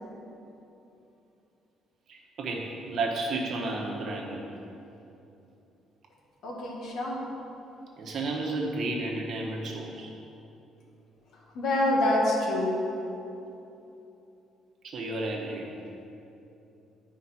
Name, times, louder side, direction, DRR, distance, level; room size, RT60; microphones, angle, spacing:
voice 1, 2.1-4.4 8.0-10.1 14.8-15.7, right 2 dB, 50° right, -1 dB, 1.2 m, -32 dB
voice 2, 6.4-7.2 11.3-12.8, left 1 dB, 65° left, -3 dB, 1.8 m, -26 dB
11.0 x 5.0 x 4.5 m, 2.9 s
cardioid pair, 140°, 0 cm